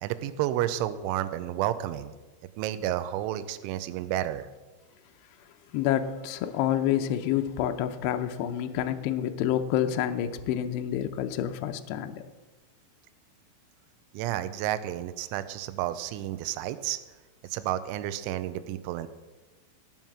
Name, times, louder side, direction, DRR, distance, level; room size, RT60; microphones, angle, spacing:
voice 1, 0.0-2.1 2.6-4.5 14.1-17.0 17.4-19.1, right 13 dB, 85° right, 12 dB, 2.9 m, -31 dB
voice 2, 5.7-12.2, left 10 dB, 80° left, 7 dB, 2.4 m, -28 dB
18.0 x 7.4 x 6.1 m, 1.2 s
omnidirectional pair, 5.8 m